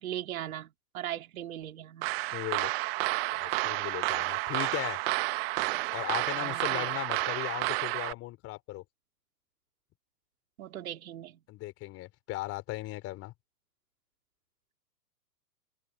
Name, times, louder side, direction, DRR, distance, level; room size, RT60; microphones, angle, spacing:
voice 1, 0.0-2.1 6.4-6.9 10.6-11.4, right 12 dB, 60° right, 3.5 m, -39 dB
sound 1, 2.0-8.1, right 22 dB, 35° right, 1.5 m, -31 dB
voice 2, 2.3-2.7 3.3-5.0 5.9-8.8 11.5-13.3, left 18 dB, 30° left, 3.9 m, -37 dB
hypercardioid pair, 130°, 48 cm